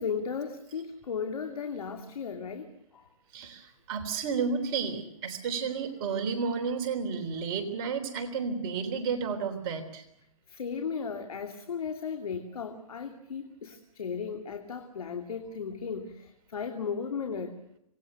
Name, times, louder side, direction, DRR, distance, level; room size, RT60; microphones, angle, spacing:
voice 1, 0.0-3.1 10.5-17.6, left 6 dB, 75° left, 5 dB, 2.6 m, -36 dB
voice 2, 3.3-10.0, right 5 dB, 40° right, 4 dB, 3.5 m, -32 dB
26.5 x 19.5 x 6.7 m, 0.77 s
hypercardioid pair, 145°, 19 cm